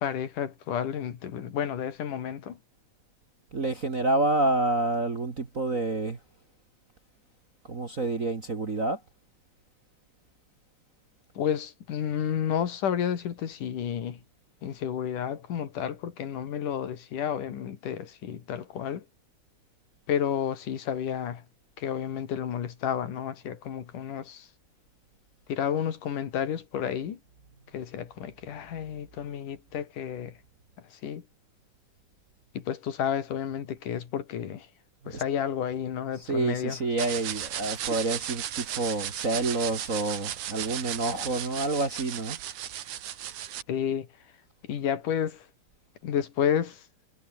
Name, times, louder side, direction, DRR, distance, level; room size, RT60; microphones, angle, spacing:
voice 1, 0.0-2.6 11.4-14.2 14.6-19.1 20.1-21.4 21.8-24.5 25.5-27.2 27.7-30.4 30.9-31.3 32.6-34.7 35.1-36.8 43.7-44.1 44.6-45.5 46.0-46.8, left 9 dB, 75° left, 3.7 m, -31 dB
voice 2, 3.5-6.2 7.7-9.0 35.1-35.2 36.1-42.4, right 2 dB, 30° right, 1.7 m, -28 dB
sound 1, 37.0-43.6, right 11 dB, 65° right, 2.9 m, -35 dB
omnidirectional pair, 3.7 m